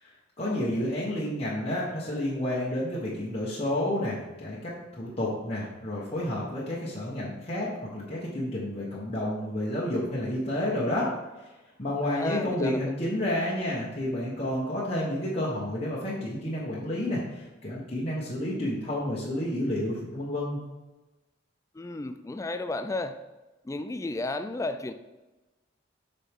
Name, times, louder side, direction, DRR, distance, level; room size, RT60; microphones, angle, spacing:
voice 1, 0.0-7.7 7.9-11.1 11.8-20.6, left 1 dB, 30° left, -7 dB, 1.3 m, -30 dB
voice 2, 12.0-12.9 21.7-23.2 23.6-24.9, left 2 dB, 15° left, 9 dB, 0.3 m, -33 dB
7.5 x 5.4 x 3.7 m, 1.1 s
head